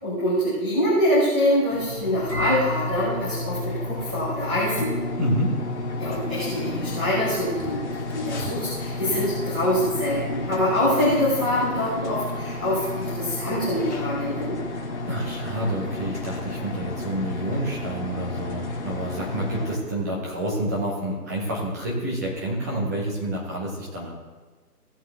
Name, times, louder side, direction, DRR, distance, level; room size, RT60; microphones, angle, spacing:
voice 1, 0.0-4.9 6.0-7.9 8.1-14.6, left 1 dB, 5° left, -16 dB, 0.8 m, -24 dB
sound 1, 1.7-19.8, left 2 dB, 45° left, 1.8 m, -31 dB
voice 2, 5.2-5.5 15.1-24.1, right 1 dB, 10° right, -5 dB, 1.2 m, -28 dB
16.0 x 7.8 x 3.4 m, 1.3 s
figure-of-eight pair, 160°, 48 cm